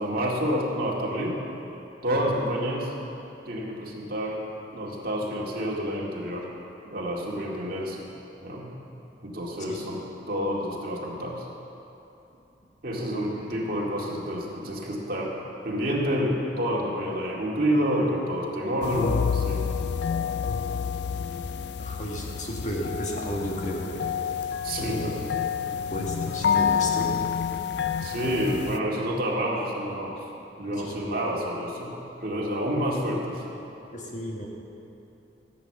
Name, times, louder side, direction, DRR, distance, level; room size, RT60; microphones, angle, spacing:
voice 1, 0.0-1.4 2.0-2.9 3.5-4.4 4.7-6.5 6.9-8.0 8.4-8.6 9.2-10.0 10.3-11.5 12.8-19.6 24.6-25.2 28.0-30.2 30.6-31.9 32.2-33.5, equal, 55° right, -3 dB, 2.1 m, -28 dB
voice 2, 12.9-13.4 21.8-25.2 25.7-27.1 30.6-31.0 31.2-31.4 33.9-34.5, equal, 40° left, -1 dB, 1.9 m, -34 dB
sound 1, 18.8-28.8, left 7 dB, 65° left, 0.5 m, -28 dB
15.0 x 8.6 x 6.7 m, 2.9 s
head